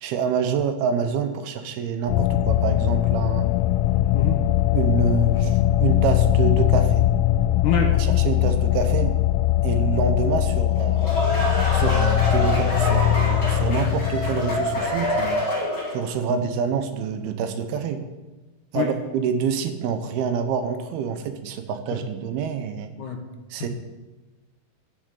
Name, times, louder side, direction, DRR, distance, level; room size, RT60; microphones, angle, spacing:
voice 1, 0.0-3.5 4.7-7.1 8.0-9.2 9.6-11.1 11.7-15.4 15.9-18.0 18.7-22.9 23.5-23.7, right 6 dB, 80° right, 9 dB, 2.8 m, -27 dB
sound 1, 2.1-15.4, left 13 dB, 85° left, 2.0 m, -21 dB
voice 2, 7.6-7.9 16.3-16.4 18.7-18.9 23.0-23.2, left 6 dB, 65° left, 2 dB, 2.1 m, -24 dB
sound 2, 10.7-16.1, left 1 dB, 30° left, 4.6 m, -26 dB
12.0 x 7.1 x 8.3 m, 1.2 s
omnidirectional pair, 4.6 m